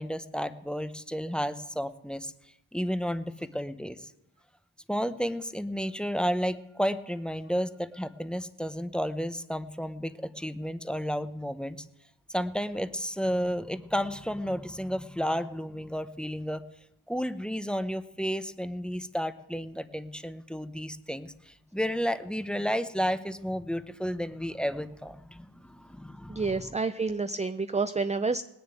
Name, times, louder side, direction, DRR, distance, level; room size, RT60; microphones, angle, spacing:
voice 1, 0.0-2.3 2.7-4.1 4.9-11.8 12.3-16.6 17.1-26.5, equal, ahead, 12 dB, 0.8 m, -32 dB
voice 2, 26.3-28.4, right 4 dB, 15° right, 11 dB, 0.5 m, -29 dB
19.0 x 7.0 x 9.0 m, 0.88 s
cardioid pair, 65°, 47 cm